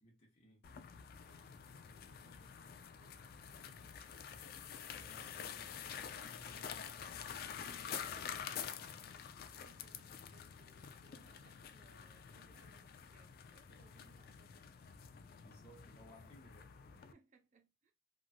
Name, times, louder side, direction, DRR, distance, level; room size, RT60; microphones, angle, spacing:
voice 1, 0.0-0.6 4.9-7.1 7.8-9.3 15.4-16.7, equal, 30° left, 0.9 m, -63 dB
sound 1, 0.6-17.1, left 8 dB, 50° left, 0.3 m, -48 dB
voice 2, 1.2-3.9 9.5-14.7 16.9-17.9, right 4 dB, 40° right, 0.7 m, -71 dB
3.0 x 2.6 x 2.3 m
head